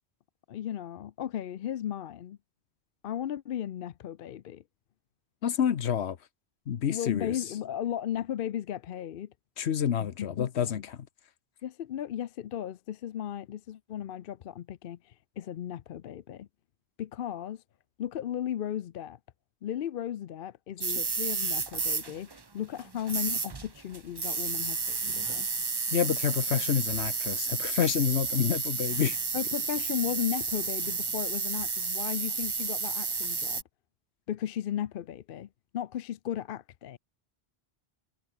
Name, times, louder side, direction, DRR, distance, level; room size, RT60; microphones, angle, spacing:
voice 1, 0.5-2.4 3.0-4.6 6.9-9.3 10.4-10.8 11.6-16.5 17.0-17.6 18.0-19.2 19.6-25.5 29.3-33.6 34.3-35.5 35.7-37.0, left 10 dB, 65° left, 0.7 m, -35 dB
voice 2, 5.4-6.2 6.7-7.3 9.6-11.0 25.9-29.2, left 8 dB, 90° left, 1.2 m, -28 dB
sound 1, 20.8-33.6, right 4 dB, 25° right, 0.7 m, -31 dB
omnidirectional pair, 1.1 m